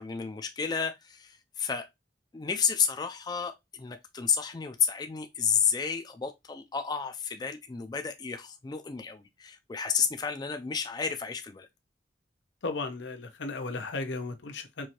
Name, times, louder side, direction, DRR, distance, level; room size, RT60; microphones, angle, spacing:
voice 1, 0.0-1.9 2.3-11.7, left 6 dB, 25° left, 0.3 m, -31 dB
voice 2, 12.6-14.9, left 3 dB, 90° left, 0.7 m, -35 dB
4.6 x 2.6 x 2.8 m
head